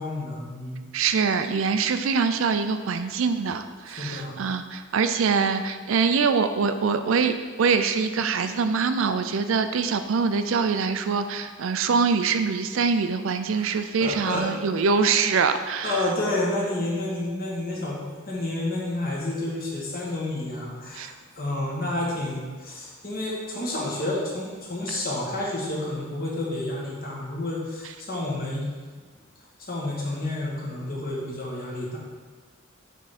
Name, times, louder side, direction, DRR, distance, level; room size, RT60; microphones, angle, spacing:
voice 1, 0.0-0.8 4.0-4.3 13.5-14.4 15.8-21.1 21.3-28.7 29.6-32.0, left 1 dB, 45° left, -4 dB, 1.5 m, -30 dB
voice 2, 0.9-16.1 21.0-21.1 24.9-25.0, right 5 dB, 70° right, 9 dB, 0.4 m, -24 dB
8.8 x 3.6 x 4.2 m, 1.4 s
head